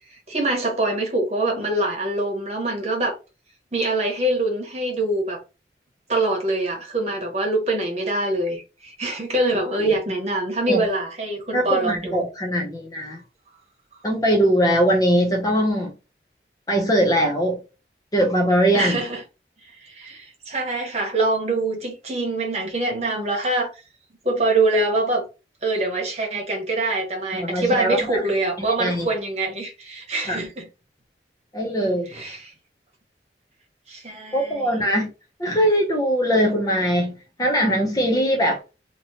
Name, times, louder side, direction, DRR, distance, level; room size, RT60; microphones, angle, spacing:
voice 1, 0.3-3.2 3.7-5.4 6.1-12.1 18.7-19.2 19.8-23.7 24.2-25.2 25.6-30.6 32.1-32.5 33.9-34.7, right 2 dB, 35° right, 1.0 m, -24 dB
voice 2, 11.5-13.2 14.0-15.9 16.7-17.6 18.1-19.0 27.3-28.2 28.6-29.1 30.3-30.4 31.5-32.1 34.3-35.1 35.4-37.1 37.4-38.6, equal, 20° left, 0.5 m, -21 dB
2.9 x 2.8 x 2.7 m
head